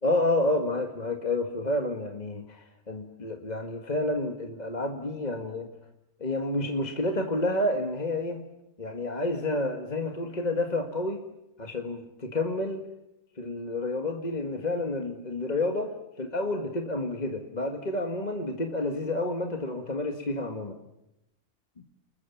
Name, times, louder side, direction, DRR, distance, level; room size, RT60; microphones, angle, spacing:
voice 1, 0.0-5.7 6.2-8.4 8.8-11.2 11.6-12.8 13.4-20.8, left 2 dB, 30° left, 5 dB, 1.8 m, -29 dB
30.0 x 21.0 x 7.2 m, 0.88 s
omnidirectional pair, 1.5 m